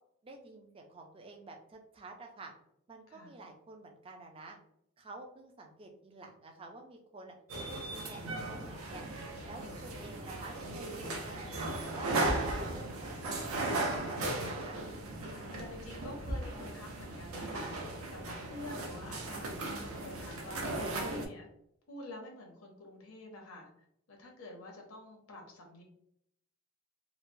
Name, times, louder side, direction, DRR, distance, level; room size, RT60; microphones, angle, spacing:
voice 1, 0.2-2.5 2.9-4.6 5.0-7.3 7.7-9.1 9.4-12.2 12.5-14.8, right 3 dB, 25° right, 2 dB, 0.3 m, -49 dB
sound 1, 7.5-21.3, right 2 dB, 80° right, 0.5 m, -37 dB
voice 2, 15.3-21.5 21.9-23.7 24.1-25.8, left 1 dB, 80° left, 1 dB, 0.8 m, -48 dB
3.0 x 2.0 x 2.5 m, 0.74 s
head